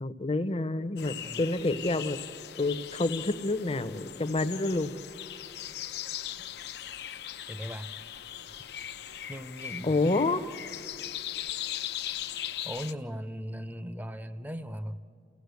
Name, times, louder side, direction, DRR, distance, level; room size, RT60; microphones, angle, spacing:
voice 1, 0.0-2.2 2.6-4.9 9.8-10.4, left 2 dB, 35° left, 11 dB, 0.7 m, -28 dB
sound 1, 1.0-12.9, left 11 dB, 65° left, 0.6 m, -39 dB
voice 2, 7.5-7.9 9.3-10.2 12.6-15.0, equal, 10° right, 11 dB, 0.6 m, -38 dB
29.0 x 16.5 x 8.2 m, 2.6 s
head